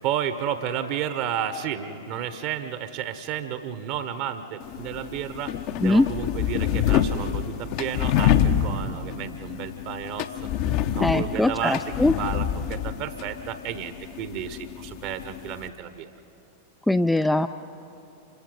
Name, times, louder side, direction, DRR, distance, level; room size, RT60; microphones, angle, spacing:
voice 1, 0.0-10.3 10.9-11.8 12.2-16.1, right 9 dB, 45° right, 11 dB, 1.1 m, -32 dB
sound 1, 4.6-15.7, left 9 dB, 45° left, 0.9 m, -27 dB
voice 2, 11.0-12.1 16.9-17.5, left 2 dB, 5° left, 9 dB, 0.4 m, -21 dB
27.5 x 24.5 x 5.4 m, 2.8 s
figure-of-eight pair, 90°, 0 cm